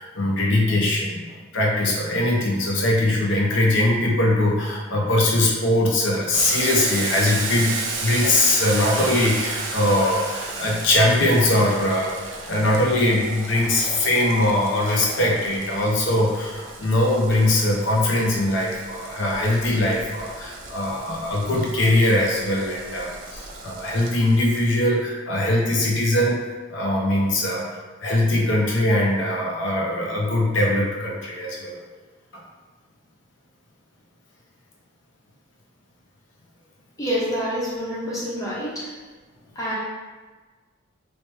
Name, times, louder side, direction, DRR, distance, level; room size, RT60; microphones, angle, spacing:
voice 1, 0.0-27.7 28.0-31.8 32.3-32.4, left 1 dB, 60° left, -3 dB, 0.5 m, -21 dB
Boiling, 6.3-24.8, right 3 dB, 65° right, 0.4 m, -34 dB
voice 2, 37.0-38.9 39.6-39.8, equal, 15° left, -7 dB, 0.6 m, -27 dB
3.2 x 2.0 x 3.1 m, 1.3 s
head